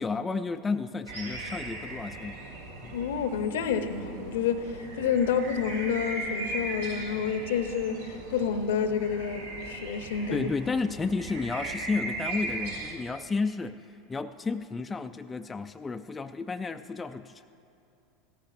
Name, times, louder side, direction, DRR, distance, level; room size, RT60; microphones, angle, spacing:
voice 1, 0.0-2.4 2.8-2.9 10.3-17.5, left 4 dB, 20° left, 8 dB, 0.3 m, -32 dB
sound 1, 1.1-12.9, right 2 dB, 75° right, 1.9 m, -38 dB
voice 2, 2.9-10.5, left 7 dB, 70° left, 9 dB, 0.7 m, -29 dB
17.0 x 14.5 x 2.6 m, 2.6 s
figure-of-eight pair, 80°, 0 cm